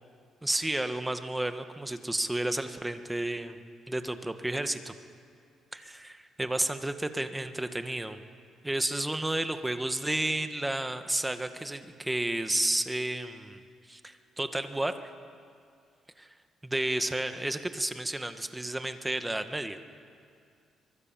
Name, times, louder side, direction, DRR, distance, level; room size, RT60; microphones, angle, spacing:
voice 1, 0.4-3.6 3.9-4.9 5.7-8.2 8.6-13.6 13.9-15.1 16.2-16.3 16.6-19.8, right 1 dB, 10° right, 8 dB, 1.6 m, -31 dB
24.5 x 22.5 x 7.6 m, 2.3 s
cardioid pair, 90°, 0 cm